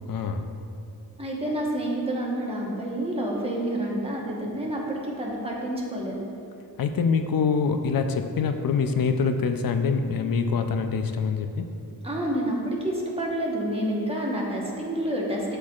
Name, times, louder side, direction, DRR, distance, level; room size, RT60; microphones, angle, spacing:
voice 1, 0.1-0.5 6.8-11.7, left 5 dB, 65° left, 7 dB, 0.5 m, -25 dB
voice 2, 1.2-6.2 12.0-15.6, right 1 dB, 15° right, -3 dB, 1.1 m, -28 dB
11.5 x 4.6 x 2.4 m, 2.6 s
wide cardioid pair, 135°, 38 cm